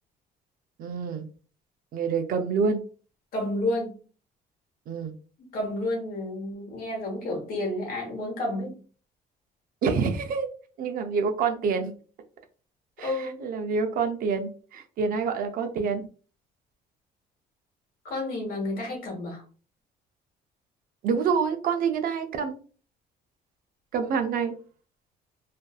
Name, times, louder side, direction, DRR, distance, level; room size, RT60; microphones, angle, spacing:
voice 1, 0.8-1.3 1.9-2.8 4.9-5.1 9.8-10.5 10.8-11.9 13.0-16.1 21.0-22.6 23.9-24.6, right 5 dB, 60° right, 7 dB, 0.5 m, -27 dB
voice 2, 3.3-4.0 5.5-8.7 13.0-13.5 18.0-19.4, left 1 dB, 60° left, 0 dB, 1.1 m, -30 dB
2.5 x 2.3 x 2.3 m, 0.38 s
cardioid pair, 110°, 17 cm